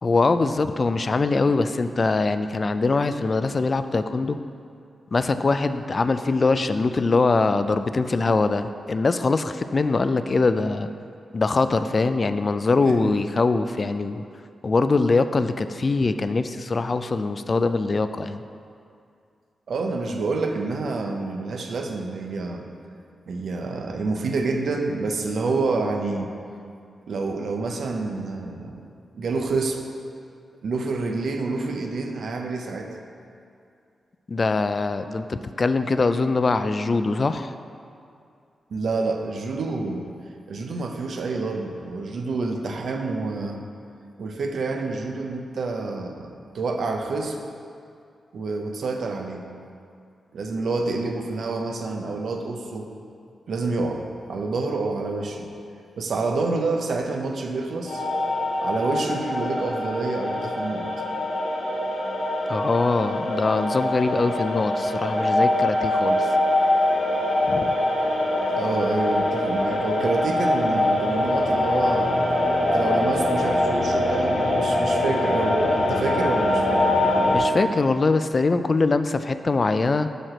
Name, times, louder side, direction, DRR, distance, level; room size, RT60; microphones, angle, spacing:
voice 1, 0.0-4.4 5.1-10.9 11.3-14.2 14.6-18.4 34.3-37.5 62.5-66.3 67.5-67.7 77.3-80.1, left 3 dB, 45° left, 10 dB, 0.3 m, -22 dB
voice 2, 19.7-22.7 23.3-26.3 27.1-28.9 29.1-29.8 30.6-33.0 38.7-40.1 40.5-43.6 44.2-47.4 48.3-49.5 50.3-52.9 53.5-55.5 56.0-58.0 58.6-60.9 68.5-72.2 72.6-76.8, right 3 dB, 70° right, 3 dB, 0.6 m, -28 dB
sound 1, 57.9-77.4, left 1 dB, 80° left, 1.3 m, -23 dB
5.8 x 5.1 x 4.9 m, 2.4 s
cardioid pair, 50°, 0 cm